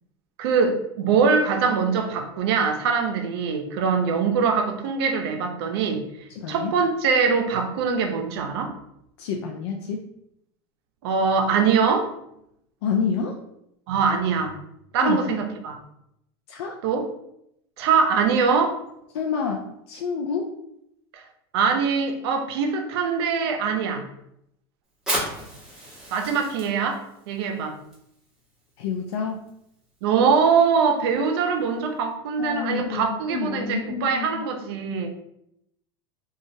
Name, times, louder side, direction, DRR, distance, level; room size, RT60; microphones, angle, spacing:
voice 1, 0.4-6.0 6.5-8.7 11.0-12.1 13.9-14.5 14.9-15.8 16.8-17.0 17.8-18.8 21.1-21.2 21.5-24.0 26.1-27.8 30.0-35.1, right 5 dB, 70° right, 4 dB, 0.6 m, -23 dB
voice 2, 6.3-6.7 9.2-10.1 12.8-13.4 15.0-15.4 16.5-16.8 19.1-20.5 28.8-29.4 32.4-34.5, left 6 dB, 90° left, 2 dB, 0.4 m, -28 dB
Fire, 24.9-32.1, equal, 5° right, 1.2 m, -37 dB
2.6 x 2.3 x 3.0 m, 0.78 s
supercardioid pair, 155°, 13 cm